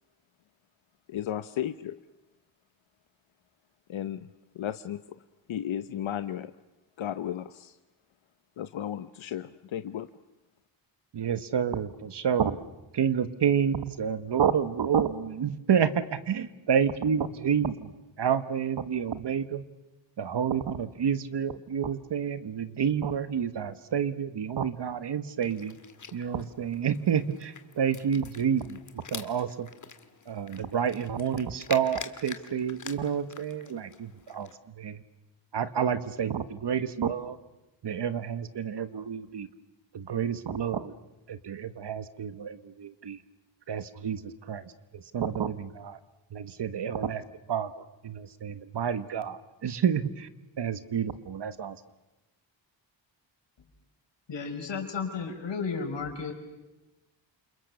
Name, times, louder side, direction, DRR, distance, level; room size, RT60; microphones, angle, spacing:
voice 1, 1.1-2.0 3.9-4.3 4.5-5.2 5.5-6.5 7.0-7.8 8.6-10.1, left 10 dB, 85° left, 10 dB, 0.9 m, -34 dB
voice 2, 11.1-12.6 12.9-19.6 20.2-25.8 26.1-29.7 30.3-35.0 35.5-37.4 37.8-39.5 39.9-40.9 41.3-43.2 43.7-46.0 46.3-47.2 47.5-50.3 50.6-51.8, right 8 dB, 60° right, 12 dB, 1.5 m, -29 dB
sound 1, 25.4-34.6, left 6 dB, 40° left, 1.8 m, -46 dB
voice 3, 54.3-56.3, left 5 dB, 65° left, 4 dB, 5.6 m, -33 dB
29.0 x 28.0 x 7.0 m, 1.0 s
wide cardioid pair, 165°, 46 cm